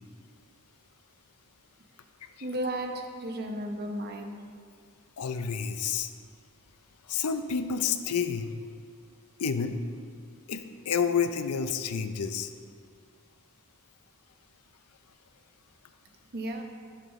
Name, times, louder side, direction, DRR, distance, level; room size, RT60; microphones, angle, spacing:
voice 1, 2.4-4.4 16.3-16.6, right 1 dB, 45° right, 3 dB, 1.0 m, -34 dB
voice 2, 5.2-6.1 7.1-8.5 9.4-9.8 10.5-12.5, left 6 dB, 90° left, 9 dB, 0.6 m, -29 dB
14.0 x 6.8 x 3.2 m, 2.1 s
head